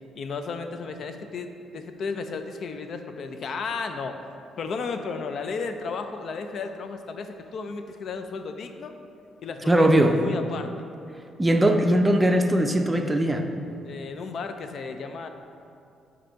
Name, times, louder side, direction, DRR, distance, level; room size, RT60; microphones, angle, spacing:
voice 1, 0.1-4.2 4.6-8.9 9.4-10.9 13.9-15.3, left 4 dB, 60° left, 7 dB, 0.4 m, -34 dB
voice 2, 9.7-10.1 11.4-13.5, right 1 dB, 15° right, 5 dB, 0.5 m, -20 dB
7.6 x 2.7 x 5.6 m, 2.5 s
cardioid pair, 90°, 0 cm